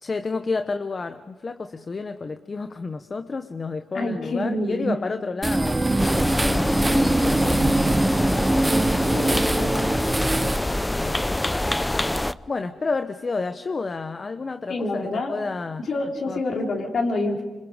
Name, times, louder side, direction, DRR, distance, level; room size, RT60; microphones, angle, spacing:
voice 1, 0.0-5.8 6.4-9.3 10.4-11.2 12.5-15.8 16.3-16.4, left 4 dB, 45° left, 8 dB, 1.0 m, -31 dB
voice 2, 3.9-4.9 9.1-9.7 14.7-15.3 15.8-17.4, left 2 dB, 65° left, 0 dB, 4.4 m, -27 dB
sound 1, 5.4-10.6, right 1 dB, 15° right, 1.3 m, -23 dB
sound 2, 5.6-10.5, right 3 dB, 35° right, 0.7 m, -30 dB
sound 3, 6.0-12.3, left 1 dB, 15° left, 0.7 m, -25 dB
26.5 x 26.0 x 5.1 m, 1.3 s
supercardioid pair, 55°, 0 cm